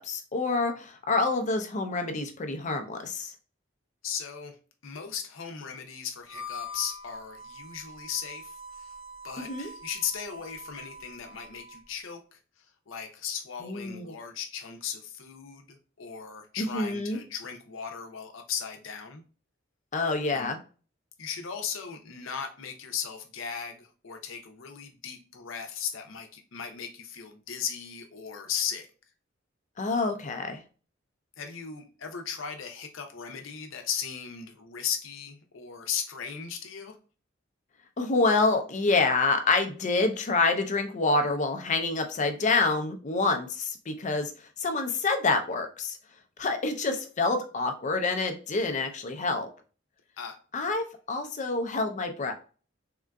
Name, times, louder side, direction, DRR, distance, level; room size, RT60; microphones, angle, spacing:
voice 1, 0.0-3.3 9.4-9.7 13.6-14.1 16.6-17.2 19.9-20.6 29.8-30.6 38.0-44.3 44.6-46.0 46.4-49.5 50.5-52.3, left 3 dB, 40° left, 6 dB, 0.5 m, -27 dB
voice 2, 4.0-4.6 4.8-8.9 9.2-12.4 12.9-19.2 20.3-20.5 21.2-28.9 31.4-37.0 50.2-50.4, left 7 dB, 80° left, 5 dB, 0.6 m, -37 dB
Harmonica, 6.2-11.9, left 2 dB, 30° right, 0.5 m, -44 dB
3.6 x 2.4 x 2.2 m, 0.37 s
head